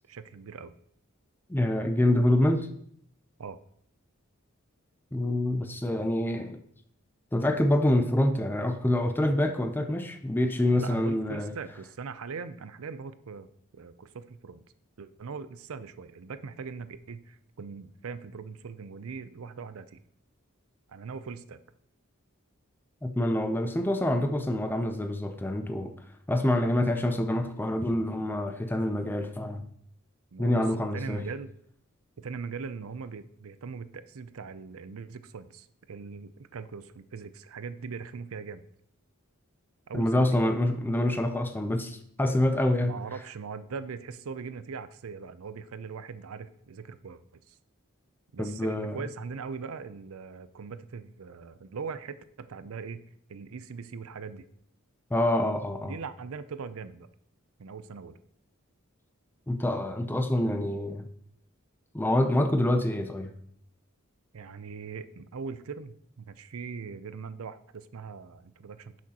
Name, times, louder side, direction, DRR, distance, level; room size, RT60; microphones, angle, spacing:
voice 1, 0.1-0.7 3.4-3.6 10.7-13.5 13.7-14.6 15.0-20.0 20.9-21.6 30.3-30.6 30.9-31.5 32.2-38.6 39.9-40.3 42.8-47.6 48.3-53.0 53.3-54.4 55.8-57.1 57.6-58.2 64.3-69.0, right 5 dB, 80° right, 13 dB, 0.5 m, -40 dB
voice 2, 1.5-2.7 5.1-6.6 7.3-11.5 23.0-25.9 26.3-29.7 30.4-31.2 39.9-43.0 48.4-49.0 55.1-56.0 59.5-61.1 61.9-63.3, left 1 dB, 10° left, 7 dB, 0.5 m, -26 dB
10.5 x 6.2 x 2.9 m, 0.66 s
head